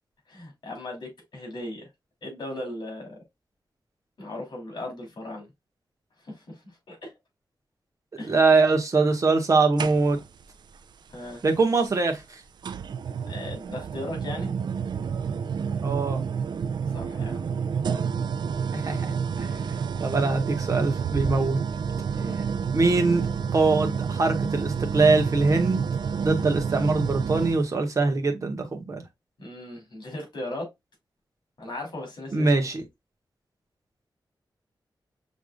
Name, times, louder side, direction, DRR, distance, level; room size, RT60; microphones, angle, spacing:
voice 1, 0.3-1.9 2.2-3.2 4.2-5.5 6.2-6.6 6.9-7.1 8.2-8.4 11.1-11.4 13.3-14.5 16.9-17.5 22.1-22.4 29.4-30.7 31.6-32.5, left 1 dB, 65° left, 2.7 m, -37 dB
voice 2, 8.3-10.2 11.4-12.2 15.8-16.2 18.7-19.1 19.4-19.6 20.0-21.6 22.7-23.2 23.5-25.8 26.2-29.0 32.3-32.8, right 3 dB, 40° right, 1.2 m, -22 dB
sound 1, 9.8-10.4 11.8-11.9 12.6-27.7, right 6 dB, 65° right, 0.4 m, -29 dB
6.4 x 3.4 x 2.3 m
wide cardioid pair, 160°, 8 cm